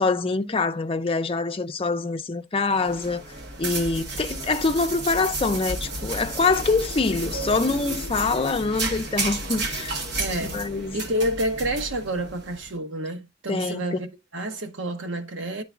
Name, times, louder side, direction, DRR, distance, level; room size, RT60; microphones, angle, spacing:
voice 1, 0.0-3.2 3.6-9.9 10.5-11.0 13.5-14.0, left 3 dB, 30° left, 0.5 m, -25 dB
sound 1, 2.7-12.7, right 2 dB, 60° right, 1.3 m, -32 dB
voice 2, 8.2-8.5 10.2-10.7 10.9-15.6, right 1 dB, 85° right, 1.1 m, -29 dB
10.0 x 3.9 x 2.4 m
head